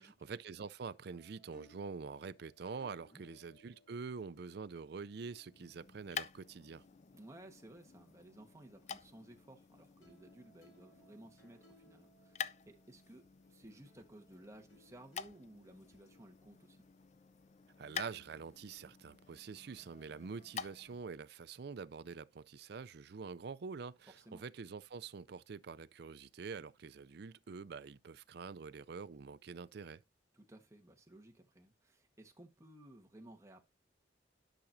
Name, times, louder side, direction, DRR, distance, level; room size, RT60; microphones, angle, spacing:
voice 1, 0.0-6.8 17.8-30.0, right 5 dB, 60° right, 0.4 m, -46 dB
sound 1, 1.0-9.7 10.0-18.4, left 1 dB, 80° left, 2.6 m, -69 dB
sound 2, 5.5-21.1, left 7 dB, 35° left, 0.4 m, -50 dB
voice 2, 7.1-16.8 20.1-20.3 24.1-24.4 30.3-33.6, right 1 dB, 15° right, 1.3 m, -57 dB
11.5 x 5.9 x 2.7 m
head